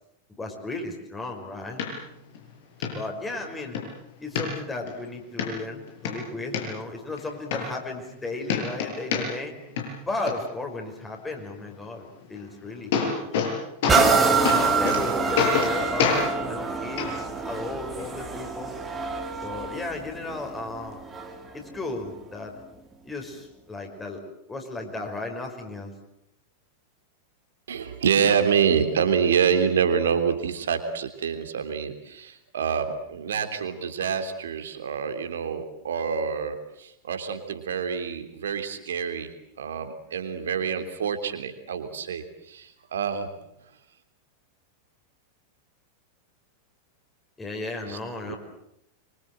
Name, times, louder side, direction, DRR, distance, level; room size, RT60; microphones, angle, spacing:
voice 1, 0.4-1.8 2.9-3.8 4.2-9.5 10.1-13.3 14.1-18.7 19.4-21.0 21.5-22.6 23.0-24.2 24.5-25.9 47.4-48.4, left 2 dB, 15° left, 2 dB, 5.5 m, -35 dB
sound 1, 1.8-1.9 2.3-2.4 2.8-2.9 3.4-3.8 4.3-4.9 5.4-5.5 5.9-6.6 7.2-7.3 7.5-8.2 8.4-9.5 9.8-10.3 12.3-12.4 12.7-13.5 13.8-14.2 14.4-15.0 15.4-15.7 16.0-16.2 17.0-17.1 18.0-18.1, left 6 dB, 55° left, 7.1 m, -25 dB
sound 2, 13.9-21.5 22.1-22.2, right 5 dB, 15° right, 3.2 m, -26 dB
voice 2, 27.7-39.3 39.6-43.3 47.9-48.0 48.3-48.4, right 7 dB, 65° right, 7 dB, 3.3 m, -26 dB
25.0 x 25.0 x 7.8 m, 0.80 s
figure-of-eight pair, 90°, 0 cm